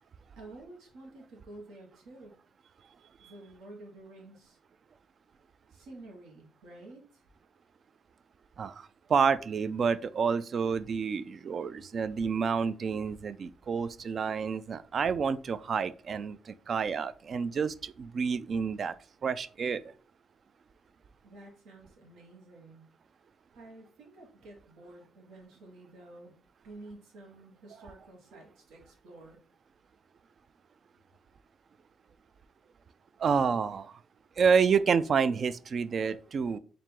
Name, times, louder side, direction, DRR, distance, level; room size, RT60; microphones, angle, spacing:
voice 1, 0.4-2.4 3.2-4.6 5.7-7.2 21.2-22.9 23.5-26.3 26.6-29.4, right 2 dB, 85° right, 1.2 m, -50 dB
voice 2, 8.6-18.9 19.2-19.9 33.2-34.0 34.4-36.6, right 6 dB, 50° right, 0.3 m, -29 dB
4.2 x 2.5 x 3.7 m
cardioid pair, 90°, 0 cm